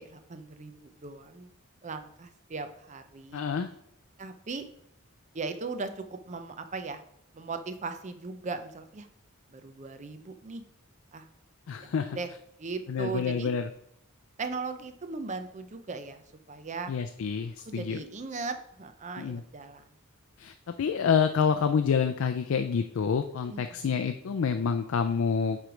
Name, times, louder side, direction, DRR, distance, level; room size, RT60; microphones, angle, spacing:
voice 1, 0.0-1.5 1.8-3.4 4.2-4.6 5.3-7.0 7.3-9.1 9.5-10.6 11.1-11.2 11.8-12.3 12.6-13.5 14.4-16.2 16.5-16.9 17.7-19.8 23.5-24.0, right 4 dB, 35° right, 9 dB, 0.5 m, -38 dB
voice 2, 3.3-3.7 11.7-12.2 12.9-13.7 16.9-18.0 19.2-19.4 20.4-25.6, left 6 dB, 70° left, 8 dB, 0.4 m, -28 dB
7.6 x 3.2 x 5.1 m, 0.73 s
head